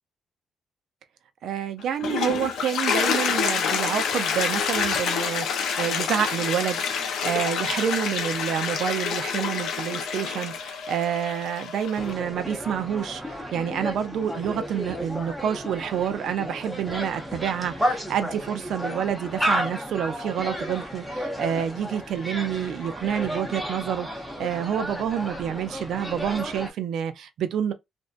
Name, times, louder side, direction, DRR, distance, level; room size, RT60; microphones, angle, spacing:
voice 1, 1.4-27.7, right 9 dB, 70° right, 0.4 m, -28 dB
Toilet flush, 1.8-12.1, left 6 dB, 75° left, 0.5 m, -27 dB
sound 1, 11.9-26.7, equal, ahead, 0.7 m, -32 dB
2.6 x 2.1 x 2.3 m
cardioid pair, 130°, 0 cm